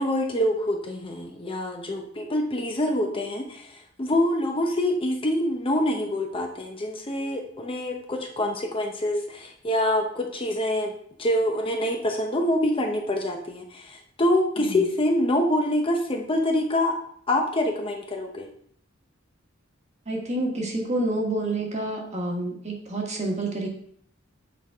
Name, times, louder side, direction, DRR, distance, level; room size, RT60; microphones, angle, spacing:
voice 1, 0.0-10.9 11.2-16.9 17.3-18.5, left 1 dB, 25° left, 2 dB, 0.7 m, -25 dB
voice 2, 20.0-23.7, right 2 dB, 35° right, 0 dB, 1.4 m, -28 dB
8.0 x 4.6 x 3.5 m, 0.63 s
head